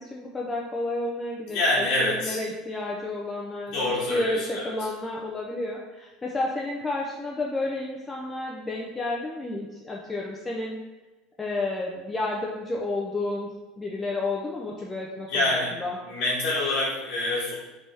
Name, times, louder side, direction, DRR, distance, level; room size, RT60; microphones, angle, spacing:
voice 1, 0.0-10.8 11.4-13.5 13.8-15.4 15.7-16.0, left 2 dB, 10° left, -2 dB, 0.4 m, -31 dB
voice 2, 1.5-2.4 3.7-4.7 15.3-15.7 16.0-17.5, left 1 dB, 45° left, -9 dB, 1.1 m, -26 dB
3.3 x 3.3 x 4.1 m, 1.1 s
cardioid pair, 165°, 0 cm